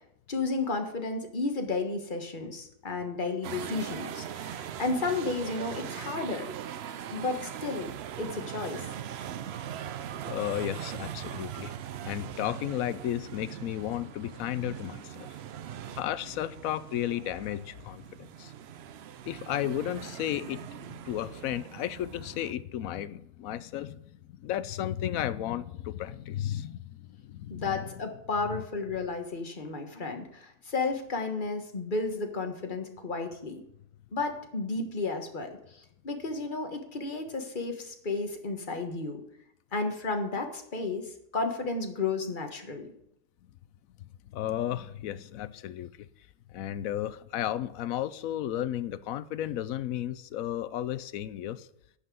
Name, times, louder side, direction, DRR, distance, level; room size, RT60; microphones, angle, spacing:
voice 1, 0.3-6.5 7.1-7.9 8.2-8.8 27.5-33.6 34.1-39.2 39.7-42.9, left 3 dB, 35° left, 1.4 m, -33 dB
sound 1, 3.4-22.5, right 10 dB, 65° right, 0.6 m, -41 dB
voice 2, 10.2-11.7 12.0-15.3 15.9-18.5 19.3-27.9 28.5-28.6 44.3-46.1 46.5-51.7, left 12 dB, 70° left, 0.9 m, -34 dB
10.0 x 5.8 x 7.7 m
omnidirectional pair, 1.7 m